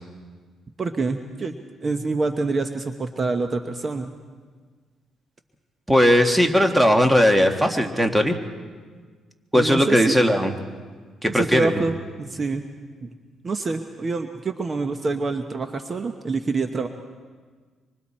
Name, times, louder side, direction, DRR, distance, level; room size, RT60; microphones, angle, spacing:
voice 1, 0.8-4.1 9.5-10.2 11.3-12.6 13.0-13.1 13.4-16.9, right 3 dB, 35° right, 6 dB, 1.0 m, -26 dB
voice 2, 5.9-8.4 9.5-10.5 11.2-11.7, equal, 10° right, 5 dB, 1.7 m, -18 dB
25.5 x 25.0 x 4.3 m, 1.5 s
cardioid pair, 90°, 0 cm